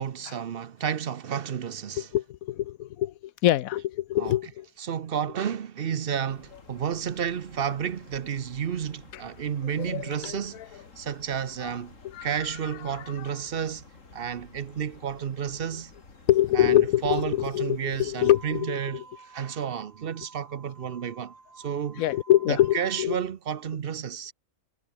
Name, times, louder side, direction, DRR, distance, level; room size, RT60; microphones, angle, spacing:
voice 1, 0.0-2.1 4.2-4.3 4.8-10.6 11.0-11.9 12.2-13.9 14.1-15.9 16.5-22.0 22.5-24.3, right 8 dB, 50° right, 0.9 m, -31 dB
voice 2, 2.0-3.1 3.4-4.7 9.7-10.7 11.6-11.7 12.0-12.3 16.3-19.0 22.0-23.2, left 13 dB, 85° left, 1.1 m, -25 dB
sound 1, 6.3-18.6, left 3 dB, 65° left, 3.6 m, -52 dB
sound 2, 18.1-23.1, right 3 dB, 65° right, 3.4 m, -51 dB
omnidirectional pair, 1.4 m